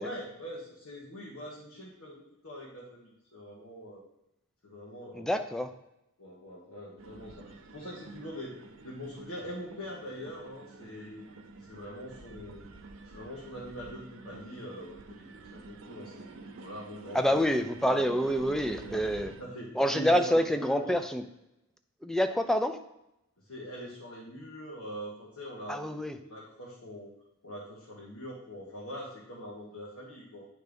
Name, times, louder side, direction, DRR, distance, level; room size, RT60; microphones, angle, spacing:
voice 1, 0.0-4.0 4.6-5.4 6.2-8.5 8.8-11.3 11.7-12.6 13.1-17.4 17.9-18.4 18.7-18.9 19.4-21.0 23.5-27.1 27.4-30.5, equal, 80° left, -5 dB, 1.5 m, -43 dB
voice 2, 5.1-5.7 17.1-19.3 19.7-21.2 22.0-22.8 25.7-26.2, equal, ahead, 7 dB, 0.4 m, -27 dB
sound 1, 7.0-19.4, right 3 dB, 65° right, 0.8 m, -49 dB
9.2 x 3.4 x 5.2 m, 0.84 s
head